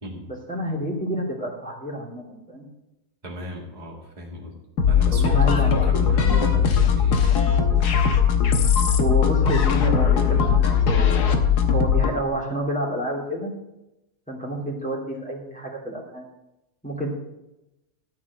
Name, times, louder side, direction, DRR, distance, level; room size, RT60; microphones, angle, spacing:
voice 1, 0.3-2.7 5.1-6.7 9.0-11.3 11.7-13.5 14.3-16.2 16.8-17.1, right 1 dB, 5° left, -4 dB, 2.8 m, -29 dB
voice 2, 3.2-4.5 4.9-7.2, equal, 30° right, -4 dB, 2.2 m, -36 dB
sound 1, 4.8-12.2, left 7 dB, 85° left, 1.6 m, -19 dB
13.5 x 4.7 x 8.4 m, 0.94 s
omnidirectional pair, 1.7 m